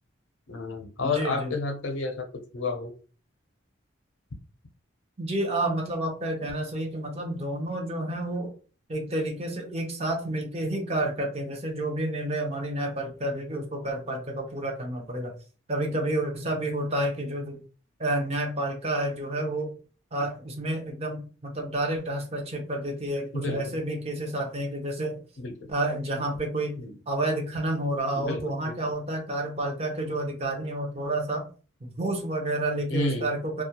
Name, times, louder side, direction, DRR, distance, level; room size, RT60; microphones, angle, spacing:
voice 1, 0.5-2.3 2.5-2.9 23.3-23.7 25.4-25.5 26.8-26.9 28.1-28.8 32.9-33.3, left 3 dB, 75° left, 5 dB, 0.5 m, -30 dB
voice 2, 1.0-1.5 5.2-8.5 8.9-15.3 15.7-17.6 18.0-19.7 20.1-25.2 25.7-26.8 27.1-31.5 32.0-33.6, right 1 dB, 30° right, 2 dB, 0.6 m, -30 dB
2.3 x 2.1 x 2.8 m, 0.37 s
head